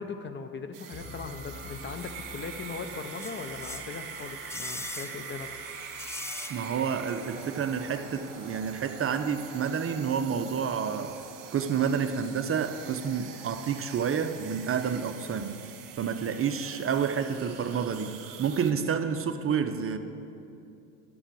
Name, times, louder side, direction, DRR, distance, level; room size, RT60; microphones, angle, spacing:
voice 1, 0.0-5.5, left 4 dB, 25° left, 0.7 m, -39 dB
sound 1, 0.7-18.7, right 8 dB, 50° right, 1.6 m, -44 dB
sound 2, 0.9-12.7, left 2 dB, 85° left, 2.8 m, -48 dB
sound 3, 3.2-7.0 7.3-7.4, left 3 dB, 5° left, 0.3 m, -42 dB
voice 2, 6.5-11.2 11.5-15.6 16.0-20.0, right 7 dB, 30° right, 0.7 m, -29 dB
11.5 x 7.0 x 8.5 m
hypercardioid pair, 80°, 43 cm